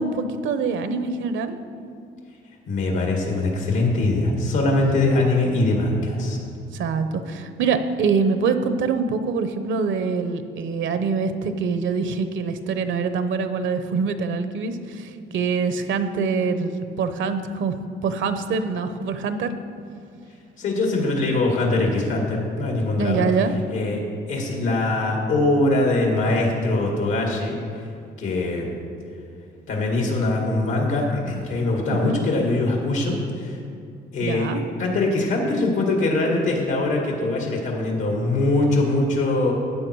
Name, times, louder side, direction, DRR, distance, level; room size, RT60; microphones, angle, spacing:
voice 1, 0.0-1.5 6.7-17.7 18.0-19.5 23.0-23.6 31.9-32.2 34.2-34.6, right 5 dB, 75° right, 9 dB, 0.9 m, -24 dB
voice 2, 2.7-6.4 20.6-23.3 23.7-24.0 24.3-27.6 28.2-28.7 29.7-33.6 34.1-34.5 34.8-39.5, left 2 dB, 85° left, 0 dB, 2.3 m, -22 dB
13.0 x 8.7 x 4.7 m, 2.4 s
cardioid pair, 90°, 20 cm